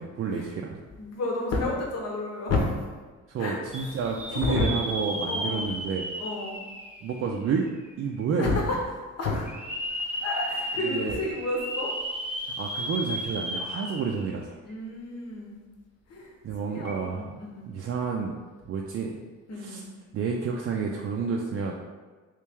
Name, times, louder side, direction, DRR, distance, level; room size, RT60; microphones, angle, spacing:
voice 1, 0.0-0.8 3.3-6.1 7.0-7.7 8.0-8.6 10.8-11.2 12.6-14.6 16.4-17.3 17.7-18.3 18.7-19.2 19.5-19.8 20.1-21.7, right 5 dB, 45° right, 0 dB, 0.4 m, -30 dB
voice 2, 1.0-2.7 3.4-3.6 4.3-4.7 5.2-5.7 6.2-6.6 8.4-8.8 9.2-9.5 10.2-11.9 14.6-15.6 16.1-16.3 16.6-17.6 19.5-19.9, left 3 dB, 55° left, -1 dB, 0.9 m, -30 dB
sound 1, 3.7-7.7 8.2-8.3 9.4-14.3 14.7-14.8 16.8-16.9, equal, 5° right, 0.8 m, -34 dB
3.2 x 3.1 x 3.5 m, 1.4 s
cardioid pair, 90°, 30 cm